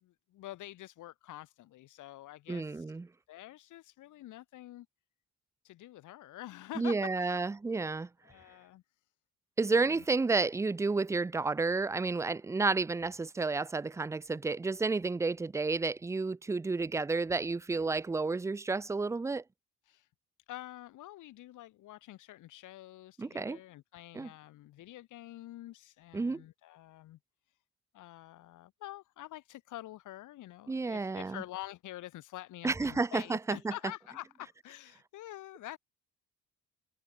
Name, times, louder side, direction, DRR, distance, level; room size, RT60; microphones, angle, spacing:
voice 1, 0.0-2.9 3.3-4.9 5.6-7.4 8.2-8.8 9.8-10.0 19.8-20.1 20.5-27.2 27.5-27.6 27.9-35.8, left 15 dB, 85° left, 1.9 m, -47 dB
voice 2, 2.5-3.1 6.8-8.1 9.6-19.4 23.2-23.6 24.2-24.3 26.1-26.4 30.7-31.4 32.6-33.7, right 3 dB, 10° right, 0.3 m, -31 dB
cardioid pair, 90°, 30 cm